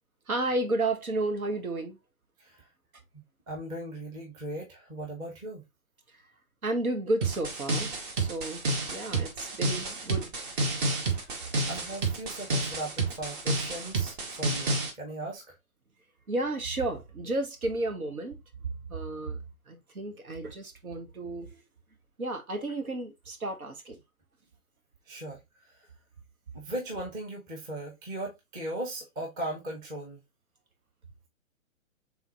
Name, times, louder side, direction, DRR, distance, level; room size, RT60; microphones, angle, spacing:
voice 1, 0.3-2.0 6.6-10.3 16.3-18.4 18.9-21.6 22.2-24.0, right 2 dB, 80° right, 1.3 m, -32 dB
voice 2, 3.5-5.6 11.1-11.3 11.7-15.5 25.1-25.4 25.7-25.8 26.5-30.2, right 1 dB, 10° right, 0.6 m, -38 dB
sound 1, 7.2-14.9, right 2 dB, 35° right, 1.2 m, -30 dB
3.6 x 3.4 x 2.9 m
figure-of-eight pair, 125°, 42 cm